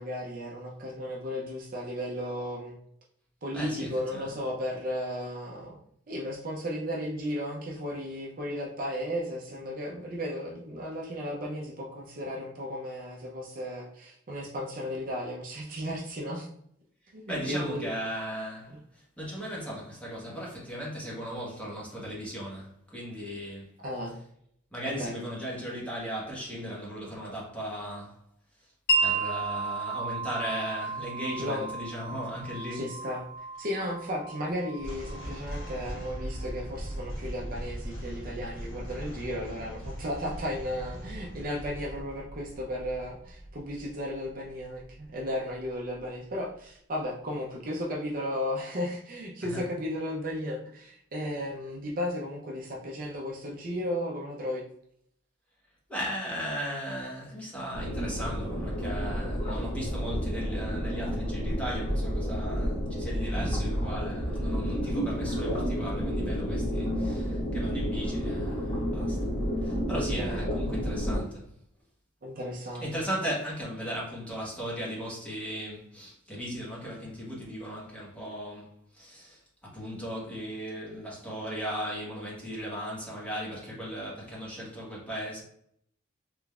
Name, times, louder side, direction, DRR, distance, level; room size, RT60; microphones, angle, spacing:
voice 1, 0.0-2.8 3.4-5.8 6.1-16.5 17.1-17.9 18.7-18.8 23.8-24.1 25.0-25.1 31.4-31.7 32.7-33.3 33.6-54.6 70.2-70.4 72.2-72.9, equal, 45° right, 0.6 m, -34 dB
voice 2, 3.5-4.3 17.3-23.8 24.7-28.2 29.0-32.8 49.4-49.6 55.9-69.2 69.6-71.4 72.8-85.4, equal, 5° left, 1.2 m, -37 dB
Wind chime, 28.9-36.5, right 3 dB, 50° left, 1.1 m, -33 dB
sound 1, 34.8-46.1, equal, 80° left, 1.4 m, -40 dB
sound 2, 57.7-71.2, equal, 25° left, 1.2 m, -30 dB
3.8 x 3.3 x 2.3 m
head